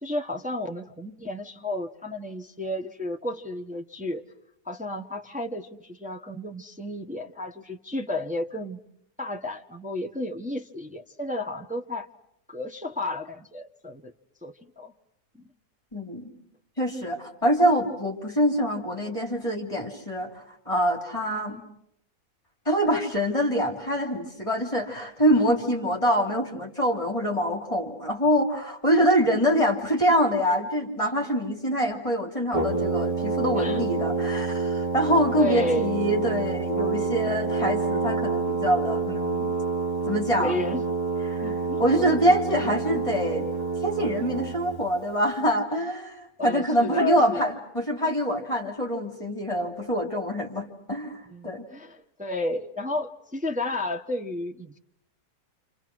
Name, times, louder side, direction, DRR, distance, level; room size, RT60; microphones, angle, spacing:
voice 1, 0.0-4.2 4.6-8.8 9.2-12.1 12.5-14.1 14.4-14.9 15.3-15.5 21.3-21.6 33.5-33.8 35.3-35.9 40.4-40.8 41.4-41.8 46.4-47.5 51.3-54.8, left 1 dB, 5° right, 3 dB, 0.9 m, -32 dB
voice 2, 15.9-16.3 16.8-21.6 22.6-39.6 40.1-40.6 41.3-41.5 41.8-43.4 43.8-51.7, equal, 20° left, 2 dB, 3.2 m, -25 dB
Brass instrument, 32.5-44.8, right 4 dB, 20° right, 4.0 m, -28 dB
29.0 x 28.5 x 6.2 m, 0.74 s
omnidirectional pair, 1.8 m